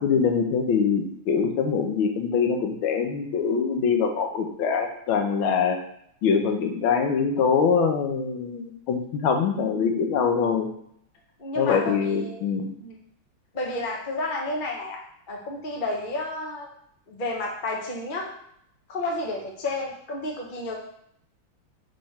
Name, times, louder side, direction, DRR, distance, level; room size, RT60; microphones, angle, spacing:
voice 1, 0.0-5.8 6.2-10.7 11.6-12.7, left 6 dB, 75° left, 3 dB, 1.6 m, -24 dB
voice 2, 11.4-12.4 12.8-13.0 13.5-15.0 15.3-16.7 17.1-18.3 18.9-20.7, left 2 dB, 30° left, -1 dB, 0.9 m, -31 dB
5.4 x 3.7 x 5.7 m, 0.70 s
omnidirectional pair, 2.4 m